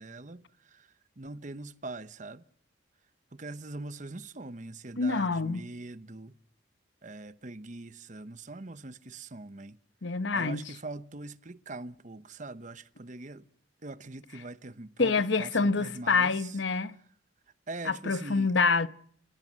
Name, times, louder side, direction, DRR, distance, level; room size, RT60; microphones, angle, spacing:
voice 1, 0.0-2.4 3.3-6.3 7.0-9.8 10.3-13.4 13.8-16.6 17.7-18.5, right 2 dB, 40° right, 0.9 m, -42 dB
voice 2, 5.0-5.6 10.0-10.7 15.0-16.9 17.9-18.9, left 4 dB, 70° left, 0.9 m, -26 dB
30.0 x 17.0 x 7.5 m
head